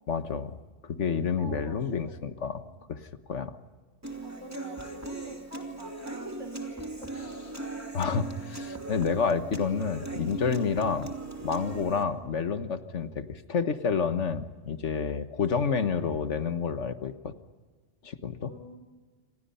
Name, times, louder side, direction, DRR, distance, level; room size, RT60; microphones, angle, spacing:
voice 1, 0.1-0.6 0.8-2.6 2.9-3.0 3.3-3.6 7.9-11.1 11.4-17.3 18.0-18.5, left 6 dB, 75° left, 10 dB, 1.6 m, -29 dB
voice 2, 1.4-1.9 2.4-2.7 4.2-7.6 12.0-12.4 18.4-18.8, right 2 dB, 80° right, 6 dB, 5.2 m, -46 dB
Human voice / Acoustic guitar, 4.0-12.0, right 2 dB, 15° right, 2.6 m, -39 dB
28.5 x 26.0 x 5.6 m, 1.4 s
omnidirectional pair, 1.2 m